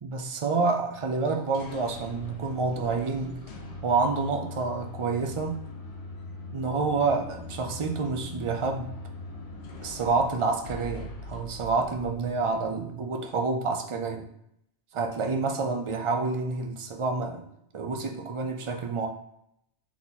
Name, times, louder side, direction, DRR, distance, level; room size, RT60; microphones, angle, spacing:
voice 1, 0.0-3.5 3.8-5.5 6.5-8.9 9.8-14.3 14.9-17.5 17.7-19.1, right 4 dB, 45° right, 3 dB, 0.4 m, -28 dB
sound 1, 1.3-12.9, left 3 dB, 70° left, 1.1 m, -41 dB
3.8 x 3.0 x 4.0 m, 0.76 s
omnidirectional pair, 1.1 m